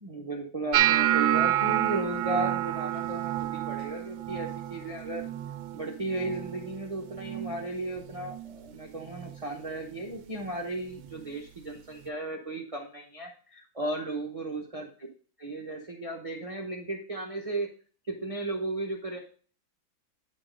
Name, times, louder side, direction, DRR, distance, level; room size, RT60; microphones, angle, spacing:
voice 1, 0.0-5.2 5.7-14.9 15.4-17.7 18.1-19.2, right 2 dB, 25° right, 0 dB, 0.8 m, -35 dB
sound 1, 0.7-6.8 7.1-7.6 8.0-8.5 9.1-9.3 11.1-11.2, right 13 dB, 80° right, 1.5 m, -29 dB
9.8 x 4.6 x 5.1 m, 0.43 s
omnidirectional pair, 2.2 m